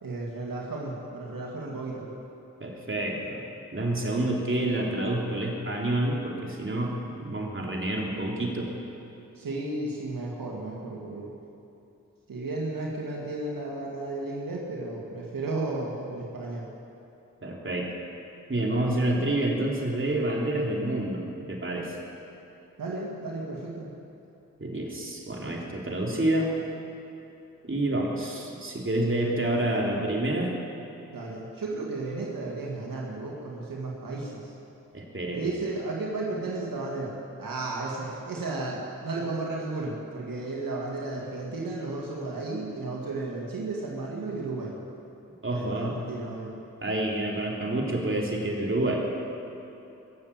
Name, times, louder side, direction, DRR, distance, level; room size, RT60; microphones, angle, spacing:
voice 1, 0.0-2.1 9.4-11.3 12.3-16.7 22.8-23.9 31.1-34.5 35.3-37.1 37.4-44.8 45.5-46.6, right 2 dB, 80° right, -3 dB, 2.1 m, -33 dB
voice 2, 2.6-3.4 3.7-8.7 17.4-17.9 18.5-22.0 24.6-26.5 27.6-30.5 34.9-35.4 45.4-46.0 46.8-49.0, right 1 dB, 35° right, -2 dB, 3.5 m, -28 dB
21.5 x 7.5 x 8.9 m, 2.8 s
cardioid pair, 40°, 33 cm